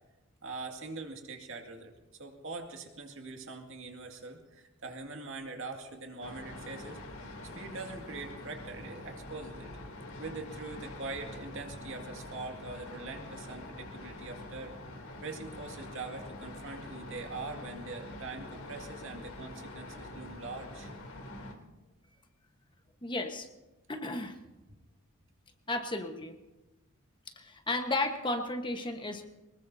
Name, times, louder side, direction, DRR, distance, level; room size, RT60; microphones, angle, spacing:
voice 1, 0.4-1.9 2.2-7.0 7.5-9.7 10.2-14.7 15.2-20.9, right 3 dB, 60° right, 3 dB, 2.2 m, -43 dB
sound 1, 6.2-21.5, left 1 dB, 70° left, 3.0 m, -45 dB
voice 2, 23.0-23.5 23.9-24.3 25.7-26.4 27.4-29.2, left 2 dB, 20° left, 5 dB, 1.2 m, -33 dB
24.0 x 21.0 x 2.8 m, 1.1 s
head